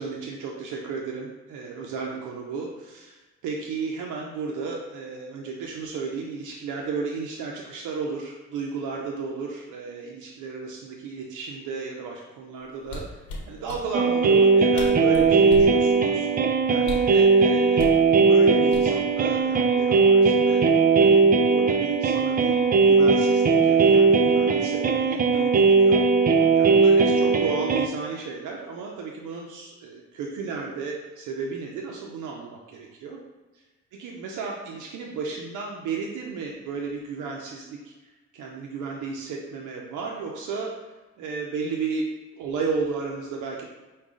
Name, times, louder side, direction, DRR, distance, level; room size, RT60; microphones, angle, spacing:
voice 1, 0.0-13.2 13.5-16.3 16.7-18.0 18.3-20.6 21.0-22.5 22.8-26.3 26.5-33.2 33.5-33.6 33.9-37.9 38.3-40.7 41.2-42.0 42.3-43.6, right 4 dB, 85° right, -1 dB, 0.6 m, -33 dB
sound 1, 12.8-13.8 14.5-14.6 14.7-15.8 16.8-17.2 17.8-18.0 18.7-19.2 19.5-19.8, left 2 dB, 85° left, 0.9 m, -34 dB
sound 2, 13.9-27.9, right 4 dB, 30° right, 0.4 m, -19 dB
4.9 x 2.3 x 3.6 m, 1.2 s
cardioid pair, 90°, 30 cm